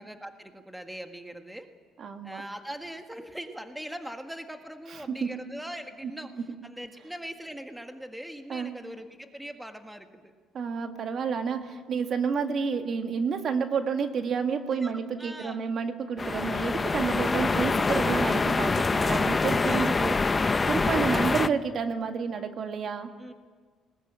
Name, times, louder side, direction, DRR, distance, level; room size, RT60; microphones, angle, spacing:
voice 1, 0.0-1.7 2.2-10.3 14.8-15.6 19.7-20.5 23.2-23.3, right 1 dB, 5° right, 6 dB, 1.7 m, -41 dB
voice 2, 2.0-2.4 5.1-5.3 8.5-8.7 10.5-20.2 20.7-23.1, right 6 dB, 50° right, 6 dB, 1.8 m, -30 dB
sound 1, 16.2-21.5, left 3 dB, 20° left, 0.6 m, -25 dB
20.5 x 19.5 x 9.0 m, 1.5 s
cardioid pair, 115°, 0 cm